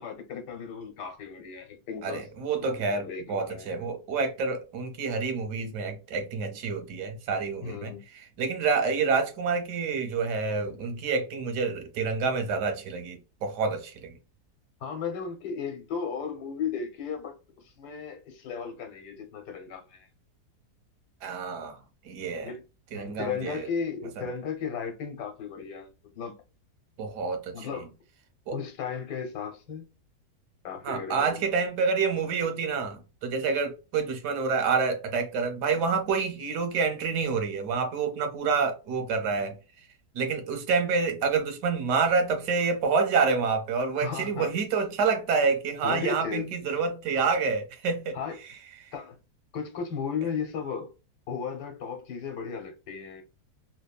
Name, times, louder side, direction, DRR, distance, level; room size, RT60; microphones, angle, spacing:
voice 1, 0.0-2.2 2.6-3.9 7.6-8.0 14.8-20.1 22.4-22.6 22.9-25.9 26.1-26.3 27.5-27.9 28.5-29.9 30.6-31.4 44.0-44.5 45.8-46.5 48.1-48.4 48.9-49.2 49.5-50.9 51.3-53.2, left 6 dB, 80° left, 1.4 m, -35 dB
voice 2, 2.0-14.2 21.2-21.8 22.0-22.5 22.9-23.7 24.2-24.3 27.0-27.7 28.5-28.6 30.8-39.6 40.1-48.2, right 5 dB, 85° right, 1.3 m, -28 dB
3.3 x 2.1 x 2.3 m
omnidirectional pair, 1.7 m